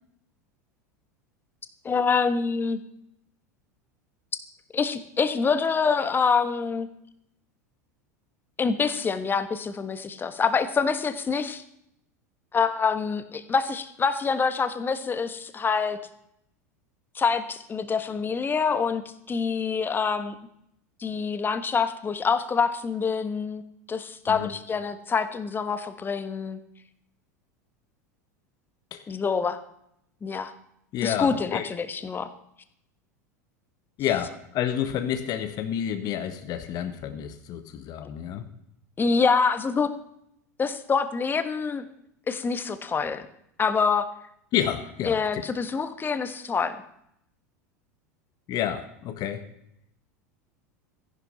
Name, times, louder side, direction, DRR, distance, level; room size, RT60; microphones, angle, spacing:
voice 1, 1.8-2.8 4.7-6.9 8.6-11.6 12.5-16.0 17.1-19.0 19.3-20.3 21.0-23.6 23.9-26.6 29.1-29.6 30.2-30.5 31.0-32.3 39.0-39.9 40.6-41.8 42.3-43.3 43.6-44.1 45.0-46.8, left 5 dB, 20° left, 11 dB, 1.4 m, -26 dB
voice 2, 30.9-31.7 34.0-38.4 44.5-45.4 48.5-49.4, left 10 dB, 45° left, 9 dB, 1.3 m, -29 dB
14.0 x 11.0 x 5.6 m, 0.74 s
hypercardioid pair, 90°, 9 cm